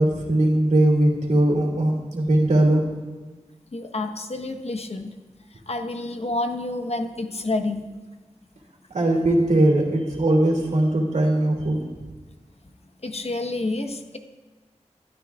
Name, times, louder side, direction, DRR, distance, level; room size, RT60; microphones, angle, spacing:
voice 1, 0.0-2.8 8.9-11.9, right 1 dB, 85° right, 0 dB, 2.7 m, -20 dB
voice 2, 3.7-5.1 5.5-7.8 13.0-14.2, left 2 dB, 60° left, 5 dB, 1.2 m, -29 dB
23.5 x 12.5 x 2.4 m, 1.2 s
wide cardioid pair, 60°, 12 cm